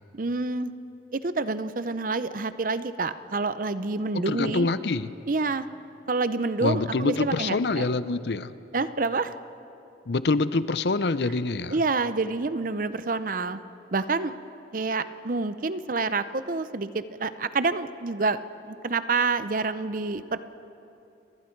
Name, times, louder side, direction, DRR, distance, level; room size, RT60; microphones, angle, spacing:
voice 1, 0.1-0.7 1.1-4.7 5.3-5.6 6.1-7.9 8.7-9.3 11.7-13.6 13.9-14.3 14.7-18.4 18.6-20.4, right 3 dB, 45° right, 13 dB, 0.6 m, -28 dB
voice 2, 4.1-5.1 6.6-8.5 10.1-11.8, left 3 dB, 60° left, 14 dB, 0.6 m, -26 dB
30.0 x 19.0 x 4.6 m, 2.7 s
head